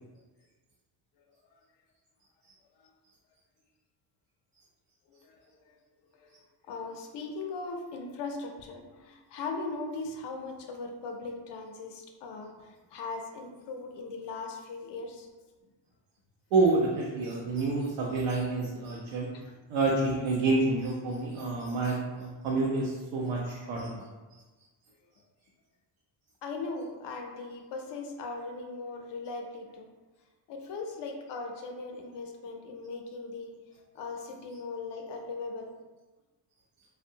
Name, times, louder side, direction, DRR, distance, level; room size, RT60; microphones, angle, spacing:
voice 1, 5.1-5.8 6.2-6.3 6.6-15.3 19.3-19.5 26.4-29.9 30.5-35.7, left 3 dB, 60° left, 3 dB, 0.5 m, -39 dB
voice 2, 16.5-19.3 19.7-24.1, right 3 dB, 80° right, -3 dB, 0.6 m, -28 dB
2.6 x 2.1 x 2.6 m, 1.2 s
cardioid pair, 135°, 49 cm